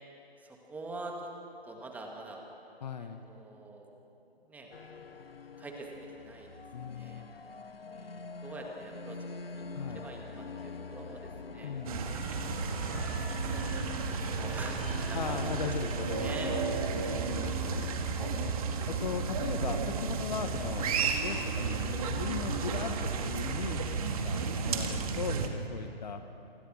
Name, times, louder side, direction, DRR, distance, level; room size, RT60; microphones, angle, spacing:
voice 1, 0.4-1.3 1.7-2.4 3.0-3.9 4.5-4.7 5.6-6.5 6.9-7.2 7.9-9.2 9.5-9.7 9.9-11.7 12.7-15.8 16.2-16.5 17.1-17.3 18.2-18.3 24.3-24.5, right 2 dB, 5° right, 1 dB, 2.1 m, -45 dB
voice 2, 2.8-3.2 6.7-7.3 9.7-10.1 11.6-12.1 15.1-17.9 18.4-18.6 18.9-21.0 21.2-23.8 24.1-26.2, left 6 dB, 45° left, 8 dB, 1.5 m, -38 dB
sound 1, 4.7-23.5, left 3 dB, 65° left, 1.3 m, -43 dB
sound 2, 11.9-25.5, right 5 dB, 35° right, 2.2 m, -33 dB
28.5 x 25.0 x 6.3 m, 2.8 s
figure-of-eight pair, 140°, 31 cm